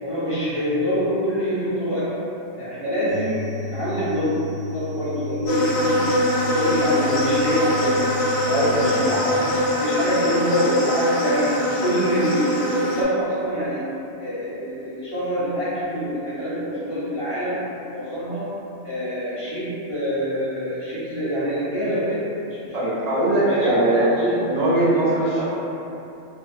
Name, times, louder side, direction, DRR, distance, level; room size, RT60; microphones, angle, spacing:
voice 1, 0.0-2.2 2.6-4.4 4.7-8.1 8.8-13.9 14.2-18.6 18.8-22.3 22.6-25.0 25.4-25.5, equal, 45° left, -12 dB, 0.4 m, -25 dB
sound 1, 3.1-9.1, left 2 dB, 85° right, 1.0 m, -34 dB
sound 2, 5.5-13.0, left 1 dB, 65° left, 0.8 m, -22 dB
voice 2, 8.4-9.1 22.7-24.1 24.5-25.5, right 2 dB, 50° right, -8 dB, 0.5 m, -21 dB
2.4 x 2.2 x 2.5 m, 2.8 s
omnidirectional pair, 1.2 m